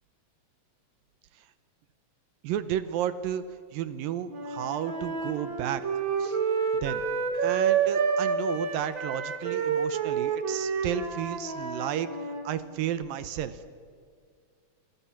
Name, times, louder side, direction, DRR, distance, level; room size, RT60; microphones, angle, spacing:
voice 1, 2.4-3.4 3.7-5.8 6.2-6.4 6.8-7.0 7.4-12.1 12.4-13.6, right 11 dB, 80° right, 12 dB, 2.6 m, -32 dB
Wind instrument woodwind instrument, 4.3-12.4, right 6 dB, 40° right, 2.3 m, -29 dB
28.0 x 26.0 x 7.2 m, 2.1 s
omnidirectional pair, 4.1 m